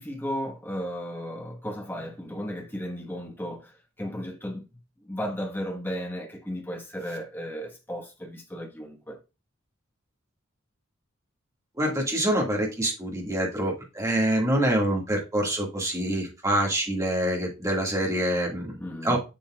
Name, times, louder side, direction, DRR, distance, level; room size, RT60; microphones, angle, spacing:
voice 1, 0.0-4.6 5.0-9.2 18.8-19.2, equal, 10° left, 1.2 m, -35 dB
voice 2, 11.8-18.8 19.0-19.2, right 1 dB, 15° right, 1.8 m, -26 dB
7.5 x 7.0 x 2.3 m
head